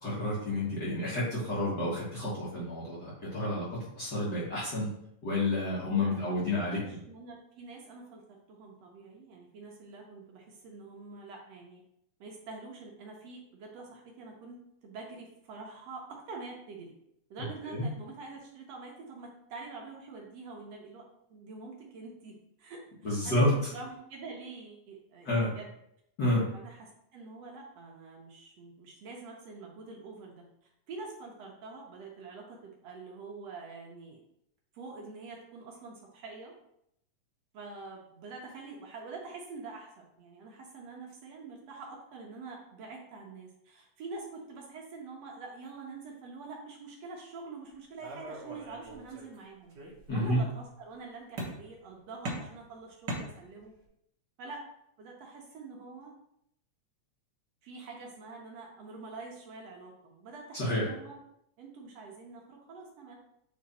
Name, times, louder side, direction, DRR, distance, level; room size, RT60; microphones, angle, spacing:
voice 1, 0.0-3.7 3.9-4.9 5.2-7.0 17.7-17.8 23.0-23.5 25.2-25.5 26.2-26.4 50.1-50.4 60.5-60.9, left 1 dB, 45° left, -7 dB, 1.7 m, -30 dB
voice 2, 6.0-8.2 8.5-11.8 12.2-17.0 17.3-21.0 21.3-25.7 26.5-30.5 30.9-34.2 34.7-36.5 37.5-49.7 50.1-53.7 54.4-54.6 55.0-56.1 57.6-61.2 61.6-63.2, right 3 dB, 65° right, -1 dB, 1.9 m, -46 dB
sound 1, 48.0-49.4 49.7-50.4 51.4-51.9 52.2-53.8, right 1 dB, 50° right, 1.5 m, -40 dB
7.5 x 3.5 x 4.1 m, 0.76 s
omnidirectional pair, 3.4 m